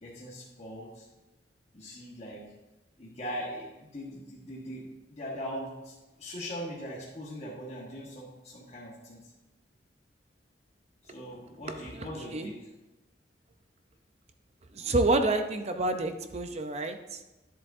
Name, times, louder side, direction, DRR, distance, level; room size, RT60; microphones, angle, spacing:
voice 1, 0.0-1.1 1.7-2.5 3.0-9.3 11.0-12.7, equal, 35° left, -6 dB, 1.4 m, -41 dB
voice 2, 14.7-17.0, right 2 dB, 35° right, 7 dB, 0.6 m, -27 dB
10.5 x 7.6 x 2.6 m, 1.1 s
head